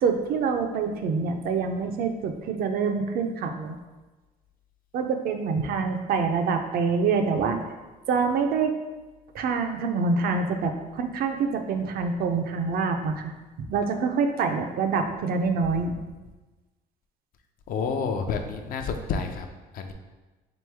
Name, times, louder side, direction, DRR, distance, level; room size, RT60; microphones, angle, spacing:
voice 1, 0.0-3.8 4.9-7.6 8.1-8.7 9.3-13.3 13.7-16.0, right 5 dB, 60° right, 5 dB, 0.5 m, -26 dB
voice 2, 17.7-19.5 19.7-19.9, left 5 dB, 55° left, 6 dB, 0.4 m, -29 dB
3.8 x 3.0 x 3.4 m, 1.2 s
cardioid pair, 110°, 17 cm